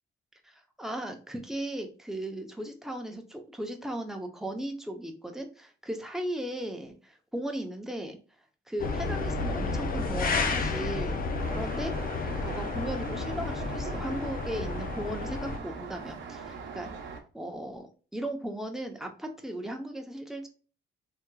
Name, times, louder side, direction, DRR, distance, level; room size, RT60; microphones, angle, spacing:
voice 1, 0.4-8.2 8.7-11.2 11.5-11.9 12.4-16.9 17.3-17.9 18.1-20.5, right 1 dB, ahead, 4 dB, 0.8 m, -36 dB
sound 1, 8.8-15.6, left 3 dB, 45° left, 0.7 m, -31 dB
Traffic noise roadway noise, 11.4-17.2, right 5 dB, 70° right, 0.9 m, -41 dB
3.5 x 3.0 x 2.3 m, 0.37 s
cardioid pair, 90°, 20 cm